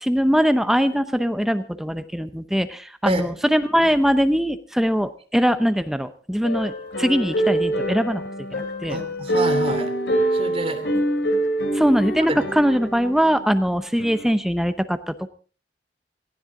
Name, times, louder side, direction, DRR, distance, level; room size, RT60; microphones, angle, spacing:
voice 1, 0.0-6.7 7.0-8.2 8.5-9.0 11.7-15.3, equal, ahead, 10 dB, 0.7 m, -21 dB
sound 1, 6.4-13.4 14.0-14.3, right 1 dB, 85° left, 3.3 m, -25 dB
voice 2, 8.9-9.9 10.3-10.8 12.3-12.4, right 1 dB, 35° right, 5 dB, 2.9 m, -27 dB
18.0 x 15.5 x 3.8 m, 0.38 s
head